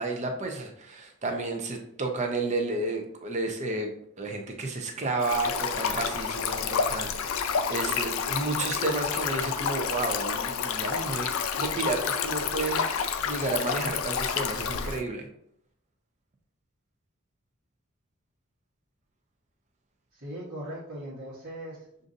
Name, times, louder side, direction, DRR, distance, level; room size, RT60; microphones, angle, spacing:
voice 1, 0.0-15.3, right 3 dB, 35° right, 3 dB, 0.6 m, -32 dB
Stream, 5.2-15.0, left 6 dB, 80° left, 0.4 m, -29 dB
voice 2, 20.1-22.1, right 1 dB, 50° right, -9 dB, 1.2 m, -39 dB
6.5 x 2.6 x 2.5 m, 0.71 s
head